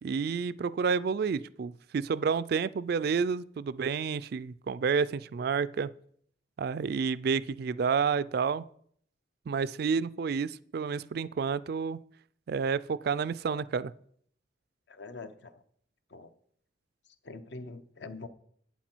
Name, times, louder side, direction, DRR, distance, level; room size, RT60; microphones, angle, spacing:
voice 1, 0.0-5.9 6.6-8.6 9.5-12.0 12.5-13.9, right 5 dB, 55° right, 0.3 m, -30 dB
voice 2, 14.9-15.6 16.1-16.3 17.0-18.3, left 3 dB, 60° left, 0.8 m, -44 dB
11.5 x 8.6 x 4.5 m
head